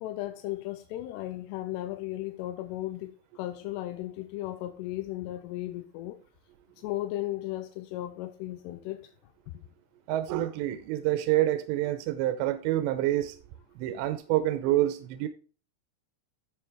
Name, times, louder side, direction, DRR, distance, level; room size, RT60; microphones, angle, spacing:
voice 1, 0.0-6.2 6.8-9.1, left 15 dB, 85° left, 2.7 m, -36 dB
voice 2, 10.1-13.3 13.8-15.3, right 14 dB, 90° right, 2.9 m, -27 dB
14.0 x 5.2 x 3.5 m
omnidirectional pair, 4.9 m